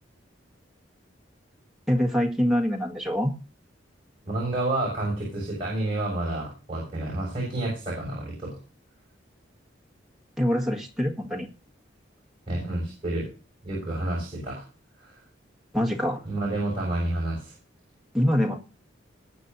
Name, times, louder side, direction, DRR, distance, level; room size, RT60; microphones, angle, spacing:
voice 1, 1.9-3.3 10.4-11.5 15.7-16.2 18.1-18.6, equal, ahead, 0 dB, 1.8 m, -24 dB
voice 2, 4.2-8.6 12.5-13.3 13.6-14.6 15.0-15.2 16.2-17.5, right 2 dB, 30° right, -5 dB, 6.5 m, -29 dB
20.5 x 8.9 x 2.7 m, 0.33 s
head